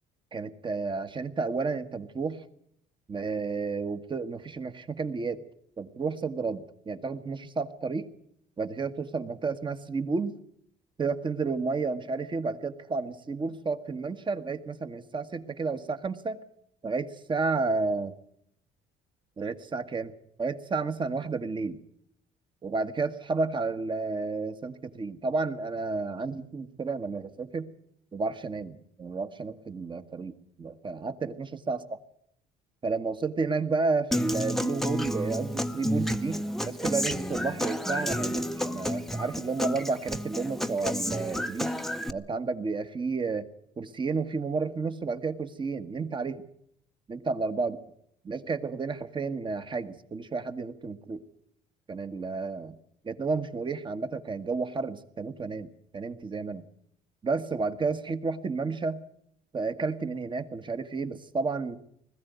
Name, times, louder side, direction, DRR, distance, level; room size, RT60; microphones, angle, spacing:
voice 1, 0.3-2.4 3.1-5.4 5.8-8.1 8.6-10.3 11.0-16.4 16.8-18.1 19.4-20.1 20.4-21.8 22.6-27.7 28.1-30.3 30.6-31.8 32.8-41.8 42.1-43.5 43.8-46.4 47.1-47.8 48.2-51.2 51.9-52.8 53.0-55.7 55.9-56.6 57.2-59.0 59.5-61.8, right 4 dB, 30° right, 10 dB, 1.5 m, -31 dB
Human voice / Acoustic guitar, 34.1-42.1, equal, ahead, 0.9 m, -31 dB
20.5 x 15.0 x 9.4 m, 0.70 s
cardioid pair, 110°, 17 cm